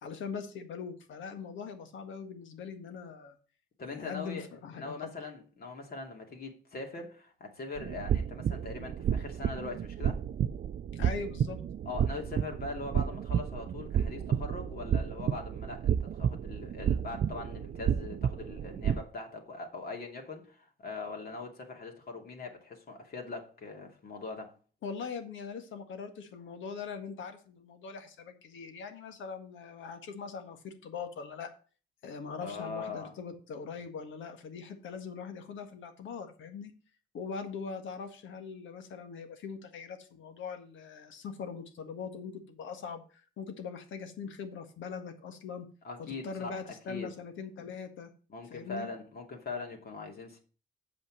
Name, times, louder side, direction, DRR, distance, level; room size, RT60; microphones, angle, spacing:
voice 1, 0.0-3.3 3.9-5.1 10.9-11.6 24.8-31.5 32.0-36.7 37.1-45.7 46.0-48.1 48.5-48.9, left 5 dB, 75° left, 1.7 m, -41 dB
voice 2, 3.8-4.5 4.7-10.2 11.8-24.5 32.4-33.1 45.8-46.6 46.9-47.1 48.3-50.4, left 3 dB, 50° left, 2.6 m, -41 dB
sound 1, 7.8-19.0, right 9 dB, 50° right, 0.6 m, -31 dB
7.3 x 5.5 x 7.3 m
cardioid pair, 90°, 20 cm